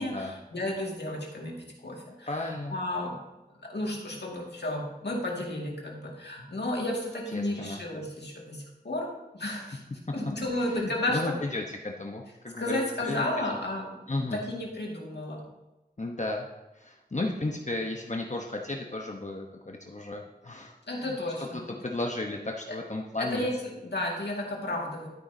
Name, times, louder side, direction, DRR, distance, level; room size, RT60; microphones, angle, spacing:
voice 1, 0.0-3.2 3.6-9.8 10.1-11.4 12.6-14.0 14.3-15.4 20.9-21.8 22.7-22.8 23.2-25.1, left 1 dB, 85° left, -2 dB, 2.0 m, -33 dB
voice 2, 2.2-2.8 7.3-7.8 10.7-13.6 14.1-14.4 16.0-16.5 16.8-21.1 21.5-23.5, left 2 dB, 45° left, 1 dB, 1.0 m, -34 dB
12.0 x 9.2 x 2.7 m, 1.0 s
wide cardioid pair, 45°, 17 cm